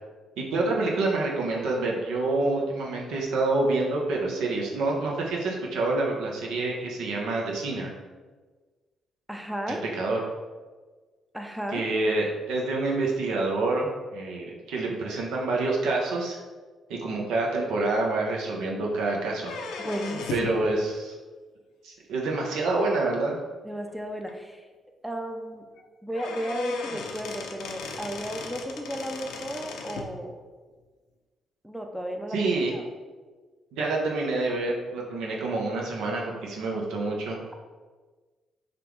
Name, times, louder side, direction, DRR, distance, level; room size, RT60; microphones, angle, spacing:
voice 1, 0.4-7.9 9.7-10.2 11.7-16.4 16.9-19.5 20.3-21.1 21.8-23.4 32.3-32.7 33.7-37.4, right 2 dB, 90° right, -1 dB, 0.7 m, -27 dB
voice 2, 9.3-9.8 11.3-11.8 19.8-20.2 23.6-24.6 25.0-25.6 26.0-30.3 31.6-32.4 32.7-32.8, equal, 5° right, 3 dB, 0.4 m, -33 dB
sound 1, 19.4-20.6 22.3-22.4 23.4-23.5 23.9-24.0 24.3-24.4 25.7-25.8 26.1-30.1, left 4 dB, 85° left, 0.5 m, -37 dB
3.4 x 2.5 x 4.5 m, 1.4 s
cardioid pair, 90°, 0 cm